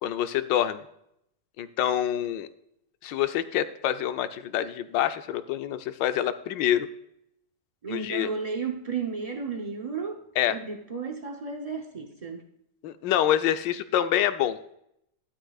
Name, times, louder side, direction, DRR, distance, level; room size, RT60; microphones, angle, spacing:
voice 1, 0.0-0.8 1.6-2.5 3.0-6.9 7.9-8.3 10.4-10.6 12.8-14.6, left 11 dB, 85° left, 11 dB, 1.4 m, -26 dB
voice 2, 7.8-10.2 10.5-12.4, right 5 dB, 70° right, 4 dB, 0.3 m, -33 dB
13.0 x 11.5 x 2.4 m, 0.74 s
omnidirectional pair, 1.9 m